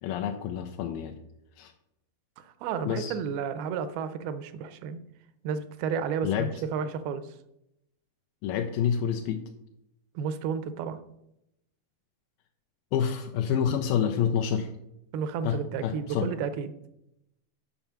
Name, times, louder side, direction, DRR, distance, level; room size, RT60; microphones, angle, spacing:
voice 1, 0.0-1.2 1.6-1.7 2.9-3.1 6.2-6.5 8.4-9.4 12.9-14.7 15.4-16.3, left 8 dB, 85° left, 4 dB, 2.3 m, -28 dB
voice 2, 2.4-5.0 5.4-7.3 10.2-11.0 15.1-16.7, right 6 dB, 85° right, 12 dB, 2.6 m, -32 dB
7.0 x 5.4 x 7.1 m, 0.83 s
omnidirectional pair, 4.2 m